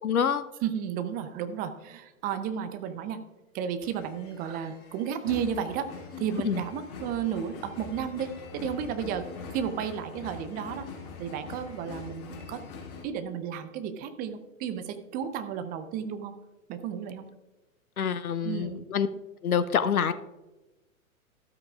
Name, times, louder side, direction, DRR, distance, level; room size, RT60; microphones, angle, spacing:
voice 1, 0.0-0.4 6.4-6.6 18.0-19.1 19.4-20.1, left 7 dB, 80° left, 13 dB, 0.8 m, -26 dB
voice 2, 0.6-3.2 3.5-5.9 6.2-10.9 11.2-12.6 13.0-16.3 16.7-17.3 18.4-18.9, right 8 dB, 20° right, 10 dB, 0.6 m, -33 dB
sound 1, 3.8-13.0, left 5 dB, 40° left, 2.7 m, -43 dB
13.0 x 13.0 x 2.4 m, 1.1 s
figure-of-eight pair, 110°, 42 cm